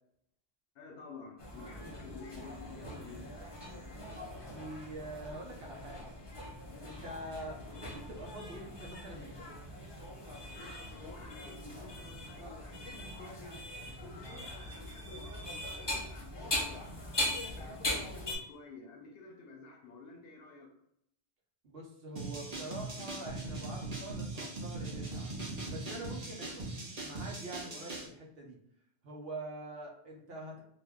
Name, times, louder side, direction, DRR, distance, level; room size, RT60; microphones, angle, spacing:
voice 1, 0.7-3.3 10.5-13.6 13.9-17.3 17.5-20.7, left 3 dB, 65° left, 0.8 m, -51 dB
sound 1, 1.4-18.3, left 1 dB, 25° left, 0.7 m, -41 dB
voice 2, 4.3-6.2 6.8-9.6 21.6-26.7 27.0-28.6 29.0-30.6, right 1 dB, 65° right, 1.0 m, -45 dB
sound 2, 22.2-28.1, right 2 dB, 40° right, 0.8 m, -40 dB
2.7 x 2.2 x 3.4 m
omnidirectional pair, 1.1 m